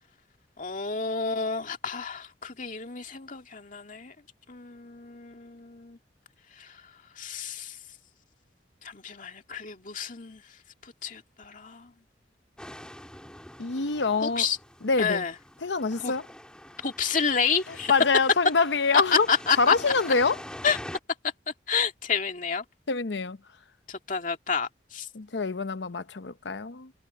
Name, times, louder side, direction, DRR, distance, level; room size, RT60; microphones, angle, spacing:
voice 1, 0.6-4.1 4.5-6.0 6.6-6.7 7.2-7.8 8.8-10.4 11.0-11.9 14.2-14.6 15.0-15.3 16.0-16.1 16.8-17.9 19.3-19.7 20.6-20.8 21.7-22.6 23.9-25.1, left 5 dB, 45° left, 2.2 m, -30 dB
sound 1, 12.6-21.0, left 1 dB, 5° left, 1.9 m, -44 dB
voice 2, 13.6-14.5 14.8-15.3 15.6-16.3 17.7-19.3 19.6-20.4 22.9-23.4 25.1-26.9, left 4 dB, 70° left, 0.8 m, -25 dB
head